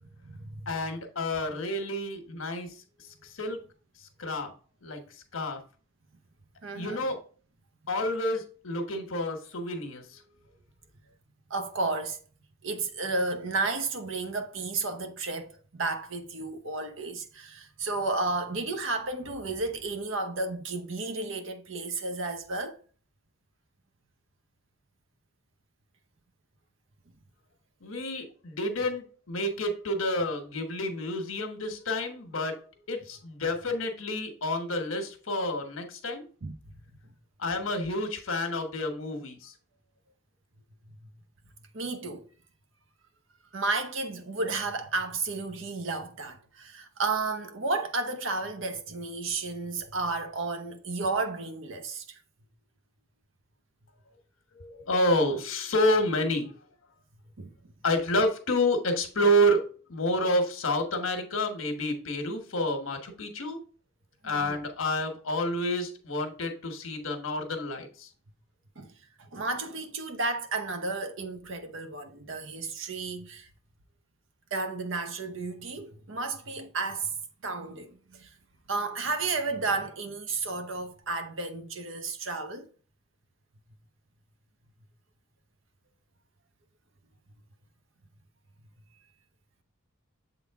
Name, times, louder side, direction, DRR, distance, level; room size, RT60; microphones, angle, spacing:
voice 1, 0.0-0.7 6.6-7.1 11.5-12.2 12.6-22.8 36.4-36.7 40.9-41.1 41.7-42.2 43.5-52.2 57.4-57.5 64.2-64.6 68.8-68.9 69.2-73.5 74.5-77.2 77.4-78.3 78.7-82.7, right 3 dB, 65° right, 0.9 m, -32 dB
voice 2, 0.7-2.7 3.3-3.6 4.2-4.5 4.8-5.0 5.3-5.6 6.7-7.2 7.9-10.2 27.8-32.6 32.9-36.2 37.4-39.5 54.5-56.5 57.8-59.6 59.9-63.6 64.2-68.1, left 1 dB, 85° left, 1.2 m, -29 dB
7.3 x 3.8 x 3.6 m
head